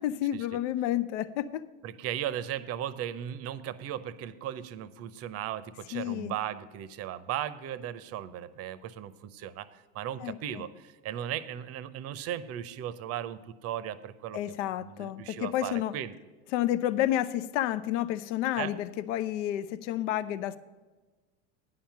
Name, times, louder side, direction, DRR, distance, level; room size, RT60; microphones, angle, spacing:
voice 1, 0.0-1.6 5.9-6.3 10.2-10.6 14.3-15.9 16.5-20.6, left 12 dB, 65° left, 13 dB, 0.6 m, -30 dB
voice 2, 1.8-14.4 14.8-16.1 18.6-18.7, right 11 dB, 35° right, 15 dB, 0.7 m, -37 dB
10.0 x 5.8 x 7.5 m, 1.2 s
hypercardioid pair, 85°, 40 cm